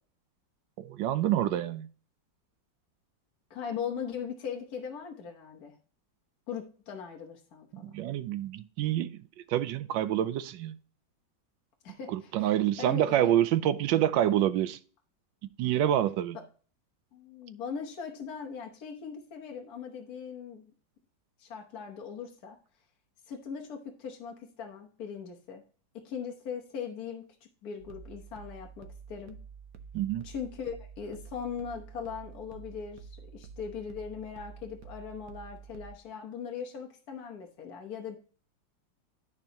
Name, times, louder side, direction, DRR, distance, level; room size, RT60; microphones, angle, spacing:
voice 1, 0.8-1.9 7.7-9.2 9.5-10.8 12.1-14.8 15.6-16.4 29.9-30.3, right 12 dB, 80° right, 1.3 m, -27 dB
voice 2, 3.5-5.8 6.5-8.0 11.8-13.4 16.3-16.4 17.1-20.7 21.4-22.6 23.3-25.6 26.0-27.2 27.6-29.4 30.2-38.2, left 6 dB, 55° left, 1.5 m, -40 dB
sound 1, 27.8-36.0, right 6 dB, 55° right, 1.2 m, -49 dB
13.5 x 4.6 x 2.9 m
omnidirectional pair, 2.0 m